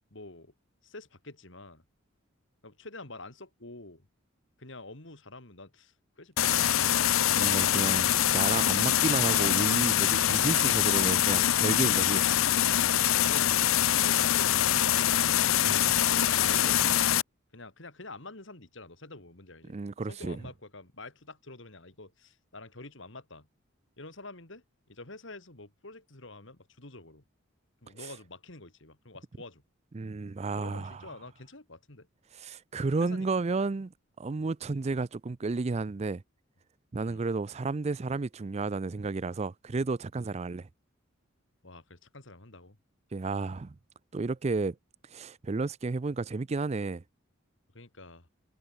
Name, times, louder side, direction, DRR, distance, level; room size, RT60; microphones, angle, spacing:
voice 1, 0.1-0.5 0.8-1.8 2.6-4.1 4.6-7.1 13.1-17.1 17.5-19.8 20.1-23.5 24.0-27.2 27.8-29.6 30.6-32.1 33.0-33.3 37.0-37.2 40.2-40.4 41.6-42.8 47.7-48.3, left 2 dB, 60° left, 3.0 m, -47 dB
sound 1, 6.4-17.2, left 11 dB, 80° left, 0.8 m, -24 dB
voice 2, 7.3-12.2 15.6-15.9 19.7-20.4 28.0-28.1 29.9-31.0 32.3-33.9 34.2-36.2 36.9-40.7 43.1-43.8 44.1-44.8 45.1-47.0, right 3 dB, 30° right, 0.4 m, -32 dB
head